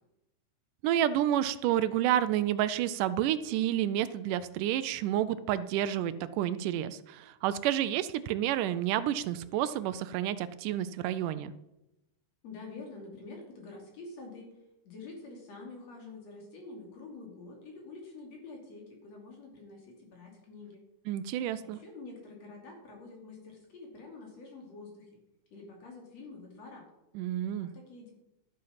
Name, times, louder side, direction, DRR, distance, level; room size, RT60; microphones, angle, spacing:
voice 1, 0.8-11.5 21.1-21.8 27.2-27.7, right 11 dB, 85° right, 14 dB, 2.1 m, -30 dB
voice 2, 12.4-14.5 14.8-20.8 21.6-25.2 25.5-26.9 27.5-28.1, left 3 dB, 55° left, 0 dB, 3.7 m, -47 dB
12.5 x 7.6 x 5.8 m, 0.91 s
omnidirectional pair, 3.7 m